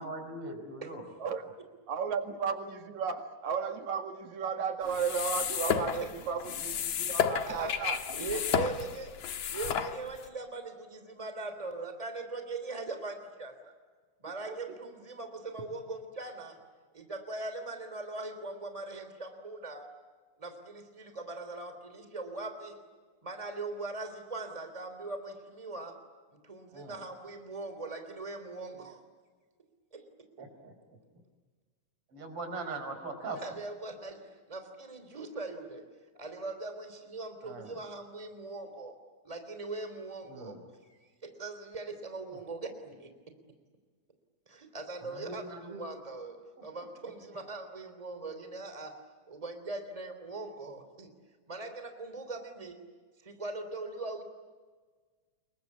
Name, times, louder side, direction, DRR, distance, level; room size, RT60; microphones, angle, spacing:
voice 1, 0.0-1.0 1.4-1.5 26.7-27.0 30.4-31.0 32.1-33.4 37.4-37.8 40.3-40.6 42.3-42.4 45.0-45.9 46.6-46.7, right 3 dB, 50° right, 6 dB, 5.4 m, -41 dB
voice 2, 1.9-8.0 14.5-14.6, right 6 dB, 75° right, 5 dB, 3.3 m, -34 dB
sound 1, 4.9-10.3, left 8 dB, 65° left, 2.3 m, -32 dB
voice 3, 7.0-7.7 8.1-9.2 9.5-10.6 10.9-13.7 14.2-16.6 16.9-19.9 20.4-22.8 23.2-26.0 26.3-29.0 29.9-30.1 33.4-35.9 36.1-39.0 39.2-43.1 44.5-51.1 51.5-52.8 53.2-54.2, right 3 dB, 10° right, 8 dB, 3.1 m, -41 dB
28.0 x 23.0 x 8.6 m, 1.4 s
omnidirectional pair, 3.4 m